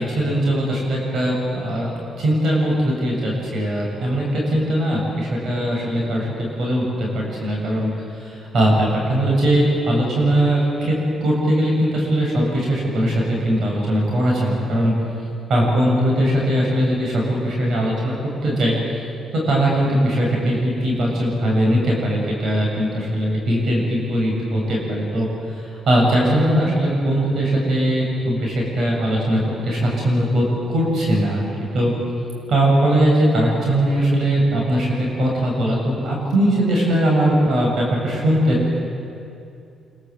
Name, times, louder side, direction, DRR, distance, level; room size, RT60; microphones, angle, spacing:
voice 1, 0.0-7.9 8.5-11.0 11.2-14.9 15.5-18.1 18.4-18.8 19.3-25.3 25.9-31.5 31.7-31.9 32.5-38.8, right 1 dB, 60° right, -2 dB, 7.5 m, -20 dB
25.5 x 24.5 x 8.1 m, 2.6 s
cardioid pair, 90°, 0 cm